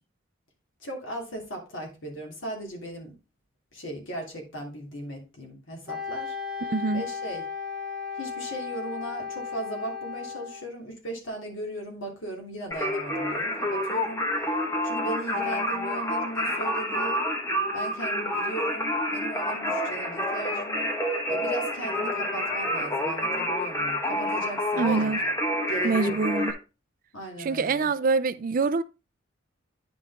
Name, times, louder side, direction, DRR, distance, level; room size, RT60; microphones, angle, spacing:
voice 1, 0.8-3.1 3.7-6.7 6.9-7.5 8.1-14.5 14.8-17.3 17.7-20.9 21.3-25.3 25.7-26.2 27.1-27.9, right 1 dB, 65° left, 2.8 m, -37 dB
Wind instrument woodwind instrument, 5.9-10.7, left 6 dB, 5° right, 2.5 m, -35 dB
voice 2, 6.7-7.0 24.8-25.2 25.8-26.5 27.4-28.8, right 4 dB, 45° right, 0.4 m, -25 dB
Singing, 12.7-26.5, left 1 dB, 15° left, 1.4 m, -28 dB
9.8 x 5.5 x 3.5 m
head